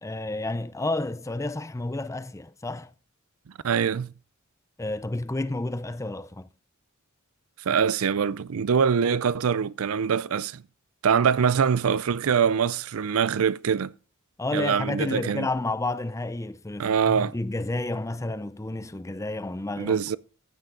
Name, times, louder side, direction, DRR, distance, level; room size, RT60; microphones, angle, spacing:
voice 1, 0.0-2.9 4.8-6.5 14.4-20.0, left 2 dB, 15° left, 0.6 m, -30 dB
voice 2, 3.6-4.1 7.7-10.6 11.0-13.9 14.5-15.5 16.8-17.3 19.8-20.2, right 7 dB, 85° right, 0.5 m, -24 dB
15.0 x 9.0 x 3.8 m
head